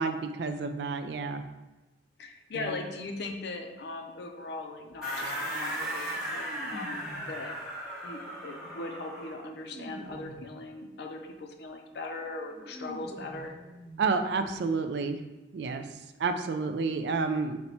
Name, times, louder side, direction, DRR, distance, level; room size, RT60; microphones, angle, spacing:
voice 1, 0.0-1.4 2.6-2.7 14.0-15.2 15.5-15.9 16.2-17.6, right 4 dB, 65° right, 7 dB, 0.3 m, -30 dB
voice 2, 2.2-7.7 8.0-13.5, left 2 dB, 65° left, 4 dB, 0.4 m, -39 dB
sound 1, 4.8-5.0 6.4-7.5 8.3-10.6 11.9-12.0 12.3-14.6 14.8-14.9 15.2-15.3, right 1 dB, 30° right, 0.9 m, -47 dB
sound 2, 5.0-9.4, right 1 dB, ahead, 1.2 m, -36 dB
4.1 x 2.1 x 4.3 m, 1.1 s
head